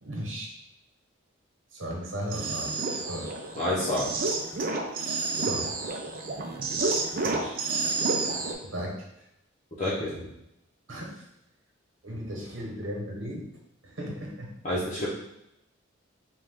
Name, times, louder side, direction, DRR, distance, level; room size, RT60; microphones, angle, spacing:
voice 1, 0.0-0.5 1.7-3.3 5.3-5.7 7.2-7.6 8.7-8.9 10.9-11.1 12.0-13.5 13.8-14.5, equal, 65° right, -1 dB, 1.0 m, -36 dB
sound 1, 2.2-8.5, right 3 dB, 45° right, 0.5 m, -30 dB
voice 2, 3.6-4.1 9.8-10.3 14.6-15.1, left 1 dB, 35° left, -8 dB, 0.8 m, -28 dB
5.5 x 2.4 x 3.6 m, 0.84 s
head